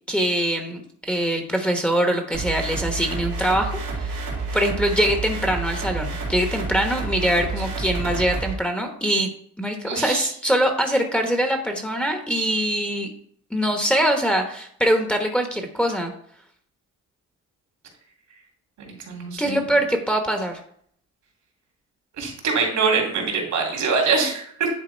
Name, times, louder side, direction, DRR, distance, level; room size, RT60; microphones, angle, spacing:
voice 1, 0.1-4.2 4.5-9.3 9.6-13.1 13.5-16.1 19.4-20.6, right 1 dB, 5° left, 3 dB, 1.1 m, -23 dB
sound 1, 2.3-8.5, right 3 dB, 90° right, 2.4 m, -29 dB
voice 2, 9.8-10.2 18.8-19.6 22.2-24.7, right 4 dB, 70° right, 0 dB, 2.6 m, -24 dB
10.0 x 3.4 x 4.5 m, 0.63 s
cardioid pair, 90°, 30 cm